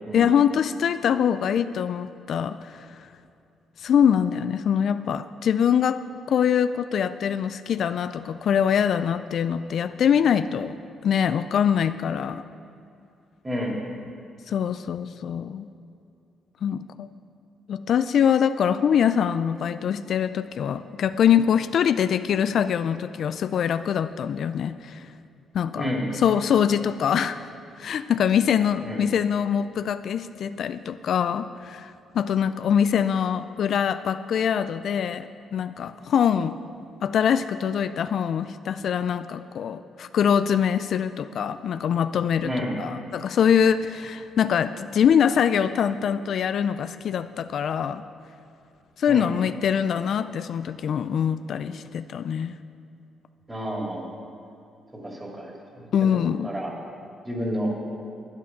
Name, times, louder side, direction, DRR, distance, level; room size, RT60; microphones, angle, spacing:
voice 1, 0.1-3.1 3.8-6.0 6.3-10.8 11.0-12.4 14.5-15.7 16.6-17.1 17.7-25.1 25.5-25.9 26.2-27.4 27.8-36.6 37.0-42.5 42.8-48.0 49.0-52.5 55.9-56.5, left 8 dB, 65° left, 12 dB, 0.3 m, -23 dB
voice 2, 13.4-13.8 25.8-26.1 28.8-29.0 42.4-42.8 49.1-49.3 53.5-54.1 54.9-56.1 56.4-56.7 57.2-57.7, equal, 15° right, -1 dB, 2.6 m, -30 dB
11.5 x 9.6 x 5.8 m, 2.7 s
cardioid pair, 90°, 0 cm